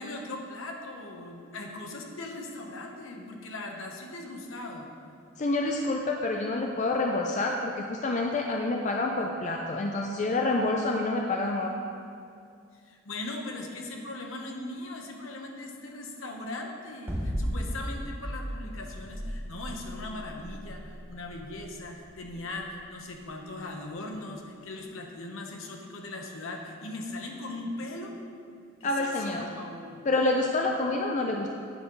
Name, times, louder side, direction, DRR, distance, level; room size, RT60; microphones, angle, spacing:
voice 1, 0.0-4.9 12.7-28.1 28.8-30.0, left 2 dB, 70° left, 2 dB, 1.0 m, -39 dB
voice 2, 5.4-11.7 28.8-29.5 30.0-31.5, left 2 dB, 35° left, 1 dB, 0.4 m, -28 dB
sound 1, 17.1-23.2, equal, 10° right, 0.7 m, -35 dB
9.0 x 5.5 x 4.0 m, 2.4 s
head